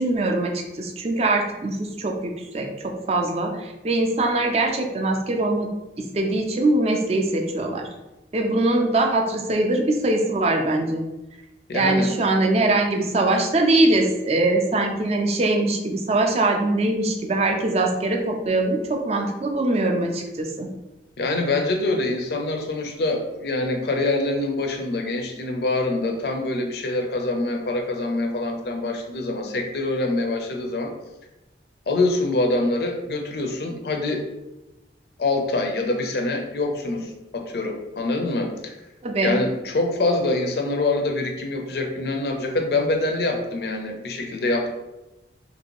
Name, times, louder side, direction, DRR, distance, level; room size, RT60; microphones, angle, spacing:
voice 1, 0.0-5.7 6.0-7.9 8.3-11.0 11.7-20.7 39.0-39.4, right 2 dB, 35° right, 3 dB, 0.4 m, -22 dB
voice 2, 11.7-12.1 21.2-30.9 31.9-34.3 35.2-38.7 39.2-44.7, left 2 dB, 60° left, 4 dB, 0.5 m, -25 dB
3.1 x 2.6 x 2.9 m, 1.0 s
head